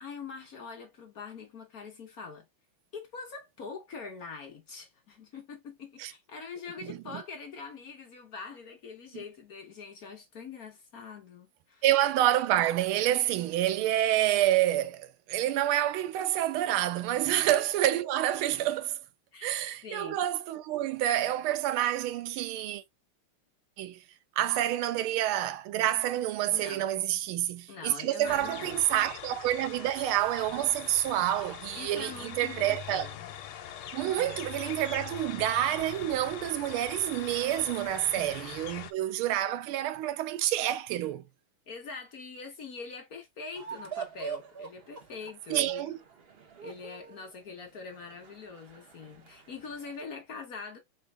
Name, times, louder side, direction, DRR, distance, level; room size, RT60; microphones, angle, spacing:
voice 1, 0.0-2.5 2.9-11.8 17.3-17.5 19.3-19.5 19.8-20.3 26.5-26.9 27.7-28.8 31.8-33.3 34.1-34.4 38.2-38.3 41.7-45.9 46.6-50.8, left 5 dB, 50° left, 1.2 m, -43 dB
voice 2, 6.8-7.2 11.8-19.0 19.4-22.8 23.8-24.0 24.4-33.1 33.9-41.2 45.5-46.0, right 13 dB, 80° right, 1.5 m, -28 dB
sound 1, 28.3-38.9, left 10 dB, 80° left, 1.6 m, -43 dB
sound 2, 43.6-50.0, right 6 dB, 55° right, 0.6 m, -44 dB
4.1 x 3.8 x 3.2 m
omnidirectional pair, 2.3 m